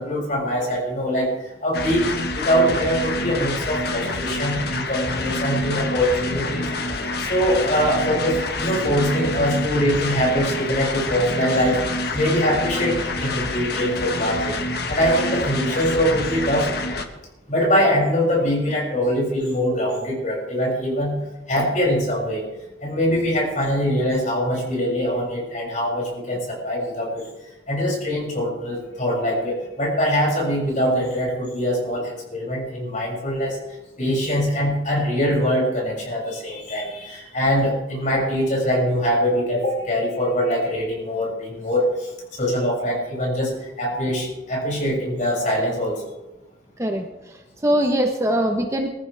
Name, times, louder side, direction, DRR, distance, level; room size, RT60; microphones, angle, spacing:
voice 1, 0.0-1.3 1.6-11.8 12.1-14.6 14.9-16.7 17.5-21.1 21.5-22.5 22.8-27.3 27.7-33.6 34.0-46.0, equal, 45° left, -2 dB, 7.3 m, -23 dB
sound 1, 1.7-17.0, left 2 dB, 60° left, 1.6 m, -27 dB
voice 2, 46.8-48.9, right 1 dB, 15° right, 3 dB, 1.2 m, -22 dB
23.0 x 15.0 x 3.5 m, 1.0 s
head